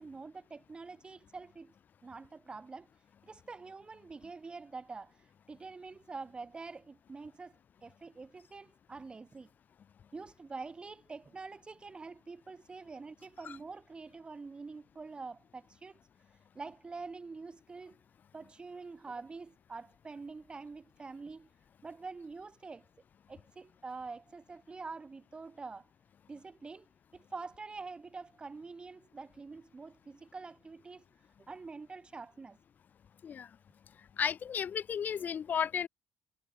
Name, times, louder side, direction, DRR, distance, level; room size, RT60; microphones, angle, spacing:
voice 1, 0.0-1.7 2.0-2.9 3.2-9.5 10.1-16.0 16.5-18.0 18.3-21.5 21.8-22.9 23.3-25.9 26.3-26.9 27.1-31.0 31.5-32.6, right 4 dB, 25° right, 5.9 m, -46 dB
voice 2, 34.2-35.9, left 8 dB, 45° left, 2.6 m, -33 dB
cardioid pair, 120°, 4 cm